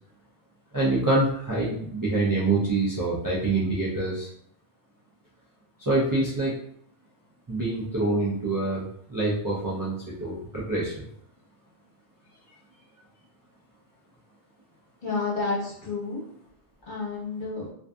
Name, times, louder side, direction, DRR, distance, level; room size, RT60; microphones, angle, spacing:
voice 1, 0.7-4.3 5.9-6.5 7.5-8.8 9.1-11.1, right 2 dB, 35° right, -7 dB, 0.3 m, -26 dB
voice 2, 15.0-16.2 16.9-17.7, left 3 dB, 50° left, -6 dB, 1.1 m, -30 dB
2.5 x 2.5 x 2.2 m, 0.67 s
omnidirectional pair, 1.1 m